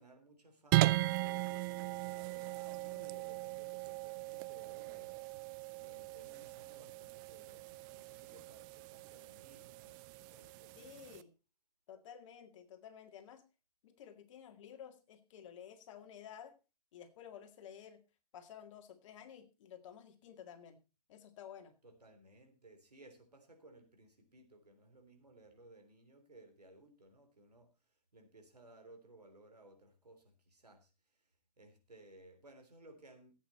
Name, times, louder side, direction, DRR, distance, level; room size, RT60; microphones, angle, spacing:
voice 1, 0.0-5.1 5.8-11.0 21.8-31.3 31.6-33.3, right 2 dB, 85° right, 5 dB, 3.4 m, -60 dB
sound 1, 0.7-11.2, right 18 dB, 35° right, 0.5 m, -38 dB
voice 2, 10.8-11.3 11.9-13.4 13.8-16.6 16.9-18.0 18.3-20.8 21.1-21.8, left 9 dB, 50° left, 8 dB, 2.1 m, -53 dB
14.5 x 8.5 x 4.3 m, 0.30 s
figure-of-eight pair, 110°, 20 cm